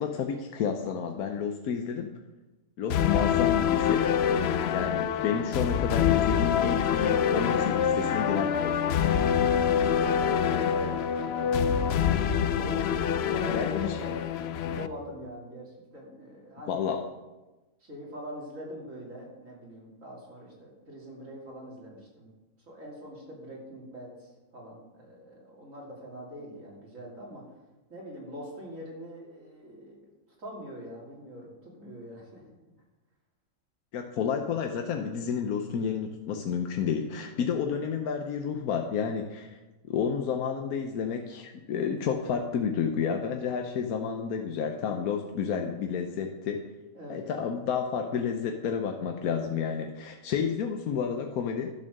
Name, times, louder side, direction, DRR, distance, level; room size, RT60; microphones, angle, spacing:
voice 1, 0.0-2.1 2.8-4.1 4.7-8.8 13.5-14.0 16.7-17.0 33.9-39.6 39.9-46.6 47.1-51.7, left 7 dB, 85° left, 4 dB, 1.3 m, -30 dB
sound 1, 2.9-14.9, left 8 dB, 65° left, 0.6 m, -26 dB
voice 2, 9.9-12.1 12.6-16.8 17.8-22.3 22.7-27.4 27.9-30.1 30.4-32.4 46.9-47.2, equal, 60° right, -3 dB, 3.2 m, -43 dB
11.5 x 7.3 x 6.5 m, 1.1 s
omnidirectional pair, 1.5 m